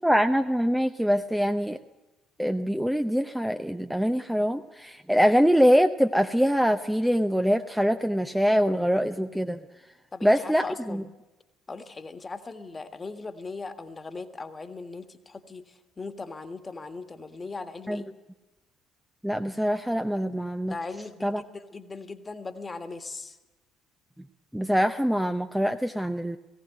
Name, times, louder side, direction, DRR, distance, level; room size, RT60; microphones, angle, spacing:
voice 1, 0.0-1.8 2.4-9.6 10.2-11.0 17.9-18.0 19.2-20.7 21.2-21.4 24.5-26.4, equal, 5° right, 7 dB, 0.7 m, -24 dB
voice 2, 10.1-11.0 11.7-18.1 20.6-23.4, left 3 dB, 25° left, 9 dB, 1.6 m, -39 dB
18.5 x 17.0 x 9.1 m, 1.1 s
figure-of-eight pair, 50°, 0 cm